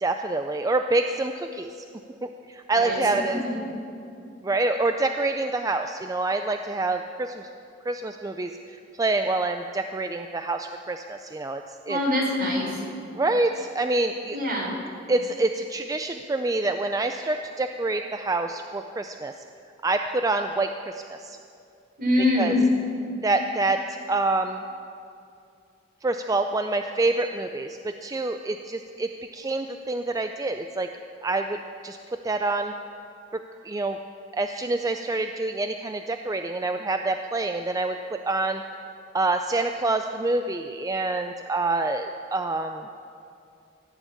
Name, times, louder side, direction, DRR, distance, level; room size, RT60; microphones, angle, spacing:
voice 1, 0.0-1.8 2.2-3.4 4.4-7.5 7.8-11.6 11.9-12.0 13.1-14.4 15.1-19.3 19.8-21.4 22.4-22.6 23.2-24.6 26.0-30.9 31.2-32.0 32.2-32.7 33.3-34.0 34.3-38.6 39.1-42.9, right 2 dB, 20° right, 6 dB, 0.4 m, -27 dB
voice 2, 2.9-3.6 11.9-12.8 14.3-14.7 22.0-22.6, left 1 dB, 55° right, -2 dB, 4.2 m, -25 dB
17.0 x 7.2 x 8.4 m, 2.5 s
head